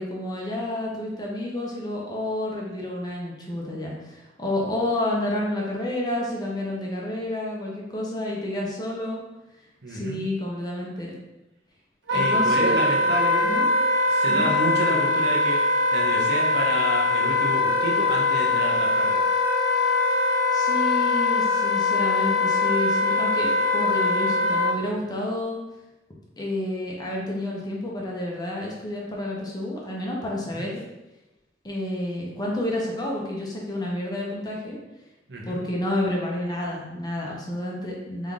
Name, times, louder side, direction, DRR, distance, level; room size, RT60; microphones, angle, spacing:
voice 1, 0.0-9.2 9.9-11.1 12.1-12.8 13.4-13.7 14.3-14.5 20.5-25.6 26.4-30.8 31.6-34.8 35.5-38.3, left 1 dB, 25° left, -3 dB, 0.9 m, -30 dB
voice 2, 9.8-10.2 12.1-13.6 14.1-15.6 15.9-19.2 30.6-30.7 35.3-35.6, right 2 dB, 65° right, -3 dB, 1.0 m, -29 dB
Wind instrument woodwind instrument, 12.1-24.8, left 3 dB, 90° right, 0.7 m, -22 dB
3.8 x 3.6 x 3.6 m, 0.98 s
head